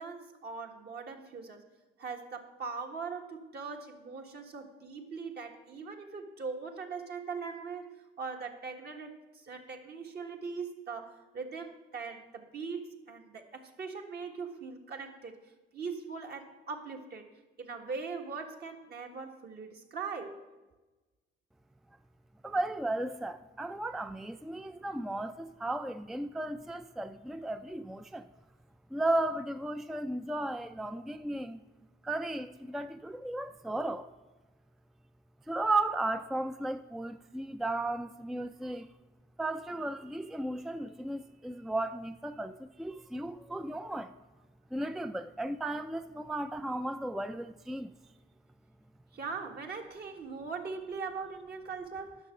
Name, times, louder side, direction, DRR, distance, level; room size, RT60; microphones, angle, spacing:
voice 1, 0.0-1.6 2.0-15.3 15.7-17.3 17.6-20.5 49.1-52.3, right 5 dB, 55° right, 1.5 m, -41 dB
voice 2, 22.4-28.3 28.9-31.6 32.0-34.1 35.5-38.9 39.4-44.1 44.7-47.9, right 2 dB, ahead, 0.3 m, -35 dB
10.5 x 6.2 x 6.4 m
cardioid pair, 90°, 20 cm